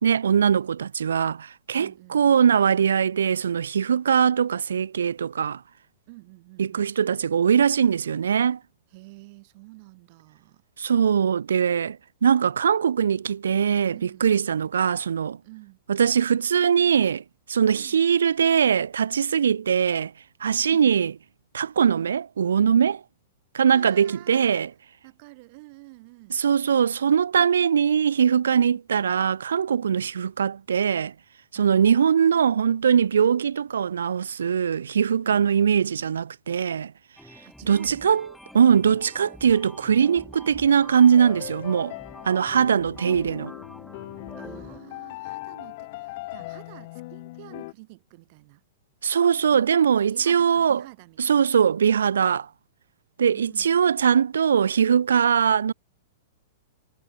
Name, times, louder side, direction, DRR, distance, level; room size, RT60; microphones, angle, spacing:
voice 1, 0.0-5.6 6.6-8.6 10.8-12.0 12.2-15.4 15.9-17.2 17.5-20.1 20.4-21.1 21.5-23.0 23.5-24.7 26.3-31.1 31.5-36.9 37.7-38.3 38.5-41.9 42.2-43.5 49.0-50.8 51.2-52.5 53.2-55.7, right 7 dB, 90° right, 0.5 m, -21 dB
voice 2, 1.8-2.2 6.1-6.9 8.9-10.6 13.9-14.3 15.4-15.8 17.7-18.0 20.7-21.0 23.7-24.5 25.0-26.4 28.5-28.8 37.4-38.1 44.4-48.6 49.5-51.5 53.3-53.8, right 26 dB, 50° right, 5.1 m, -48 dB
sound 1, 37.2-44.8, left 1 dB, ahead, 1.0 m, -46 dB
sound 2, 41.1-47.7, left 21 dB, 55° left, 0.6 m, -39 dB
hypercardioid pair, 130°, 0 cm